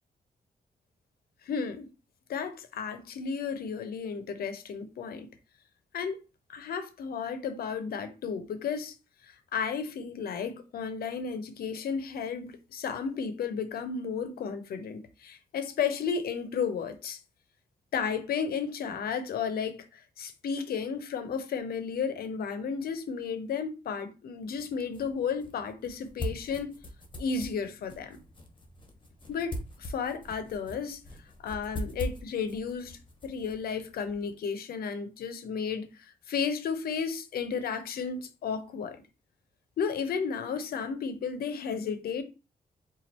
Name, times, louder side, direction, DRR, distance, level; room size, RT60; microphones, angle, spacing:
voice 1, 1.4-1.9 2.3-5.3 5.9-6.2 6.5-8.9 9.3-17.2 17.9-26.7 27.2-28.2 29.3-31.0 31.4-35.9 36.3-39.0 39.8-42.2, left 6 dB, 90° left, 0.8 m, -33 dB
sound 1, 24.4-34.3, left 1 dB, 35° left, 1.4 m, -42 dB
4.2 x 2.5 x 4.3 m
cardioid pair, 80°, 15 cm